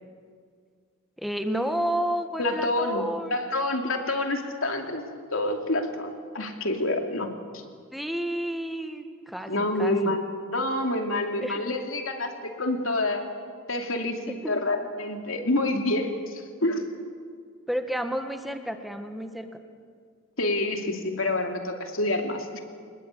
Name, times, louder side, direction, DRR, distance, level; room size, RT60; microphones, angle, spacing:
voice 1, 1.2-3.4 7.9-9.5 9.8-10.1 11.4-11.6 14.3-14.6 17.7-19.6, equal, ahead, 6 dB, 1.6 m, -31 dB
voice 2, 2.4-7.3 7.5-7.6 9.5-10.2 10.5-13.3 13.7-16.8 20.4-22.6, left 2 dB, 90° left, 4 dB, 2.6 m, -28 dB
25.0 x 20.5 x 8.3 m, 2.1 s
head